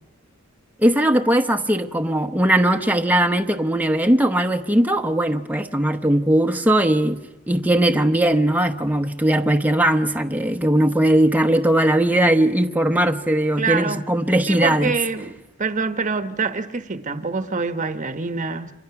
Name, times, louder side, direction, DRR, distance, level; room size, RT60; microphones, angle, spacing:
voice 1, 0.8-7.2 7.5-14.9, right 1 dB, 10° right, 0.9 m, -19 dB
voice 2, 13.6-14.0 14.5-18.7, right 4 dB, 35° right, 1.1 m, -25 dB
29.5 x 25.0 x 5.9 m
head